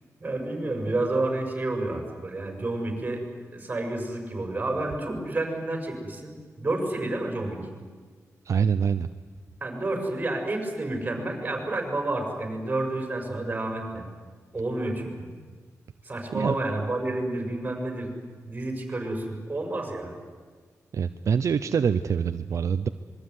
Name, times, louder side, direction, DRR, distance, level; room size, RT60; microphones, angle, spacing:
voice 1, 0.2-3.3 3.5-7.6 9.6-14.0 14.5-15.3 16.0-18.1 18.4-20.2, right 2 dB, 25° right, 3 dB, 6.3 m, -30 dB
voice 2, 8.4-9.1 16.3-16.6 20.9-22.9, right 7 dB, 65° right, 9 dB, 0.8 m, -25 dB
25.5 x 22.5 x 9.7 m, 1.5 s
wide cardioid pair, 130°, 6 cm